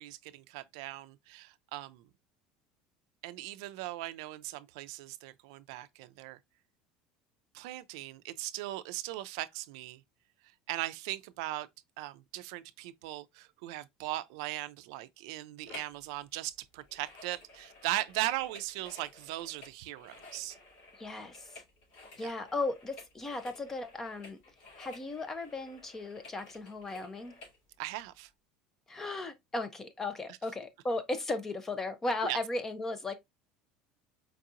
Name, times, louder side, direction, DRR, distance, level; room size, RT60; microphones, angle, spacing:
voice 1, 0.0-2.0 3.2-6.4 7.5-10.0 10.7-11.7 12.0-20.6 22.2-22.3 27.8-28.3 32.2-32.4, right 16 dB, 80° right, 0.4 m, -38 dB
sound 1, 15.7-16.0 16.3-27.6 28.1-28.2, left 3 dB, 65° left, 2.5 m, -54 dB
voice 2, 21.0-21.5 22.2-24.4 24.8-27.3 28.9-33.1, left 2 dB, 15° left, 0.6 m, -36 dB
4.5 x 2.8 x 2.4 m
cardioid pair, 160°, 3 cm